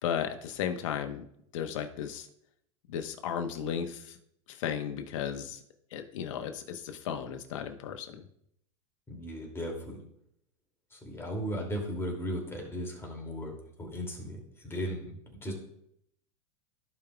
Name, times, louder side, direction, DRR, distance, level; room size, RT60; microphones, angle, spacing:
voice 1, 0.0-1.2 1.5-2.3 2.9-4.2 4.5-5.6 5.9-8.2, left 8 dB, 70° left, 6 dB, 1.1 m, -35 dB
voice 2, 9.1-10.0 10.9-13.5 13.8-15.5, equal, 15° left, 0 dB, 2.5 m, -36 dB
15.5 x 5.2 x 2.3 m, 0.72 s
hypercardioid pair, 110°, 17 cm